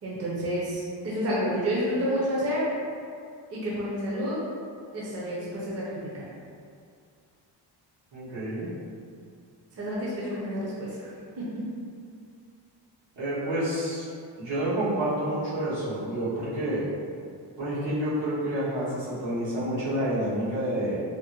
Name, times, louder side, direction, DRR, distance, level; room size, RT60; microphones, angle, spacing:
voice 1, 0.0-2.7 3.5-4.4 4.9-6.2 9.7-11.1 11.4-11.6, equal, 35° right, -7 dB, 0.6 m, -29 dB
voice 2, 8.1-8.7 13.2-14.1 14.4-16.8 17.6-21.0, right 1 dB, 80° right, -10 dB, 1.4 m, -29 dB
3.5 x 2.1 x 2.9 m, 2.3 s
cardioid pair, 125°, 44 cm